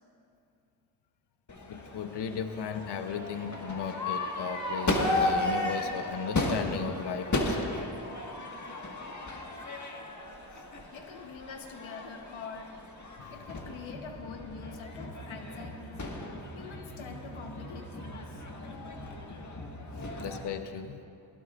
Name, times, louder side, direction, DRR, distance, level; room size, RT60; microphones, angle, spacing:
Crowd / Fireworks, 1.5-20.5, left 2 dB, 40° left, 1.7 m, -35 dB
voice 1, 1.7-7.7 13.2-13.3 20.2-21.0, left 6 dB, 60° left, 7 dB, 0.9 m, -36 dB
voice 2, 10.9-12.7 13.3-16.0 16.5-18.4 19.9-20.1, left 5 dB, 85° left, 4 dB, 1.1 m, -45 dB
20.5 x 17.0 x 2.5 m, 2.6 s
cardioid pair, 50°, 46 cm